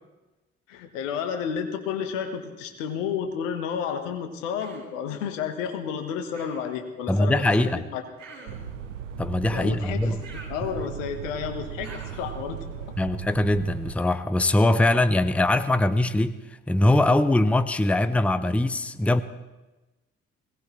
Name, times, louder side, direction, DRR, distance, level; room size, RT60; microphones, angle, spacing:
voice 1, 0.7-8.0 9.5-10.1 10.5-12.9, left 7 dB, 75° left, 7 dB, 1.3 m, -31 dB
Human voice, 4.6-5.0 6.3-6.8 8.2-8.8 10.2-11.1 11.8-12.4, right 3 dB, 60° right, 5.5 m, -46 dB
voice 2, 7.1-7.8 9.2-10.2 13.0-16.4 16.7-19.2, left 1 dB, 5° left, 13 dB, 0.7 m, -22 dB
sound 1, 8.5-13.9, right 8 dB, 85° right, 0.7 m, -37 dB
21.0 x 18.0 x 3.2 m, 1.1 s
figure-of-eight pair, 40°, 38 cm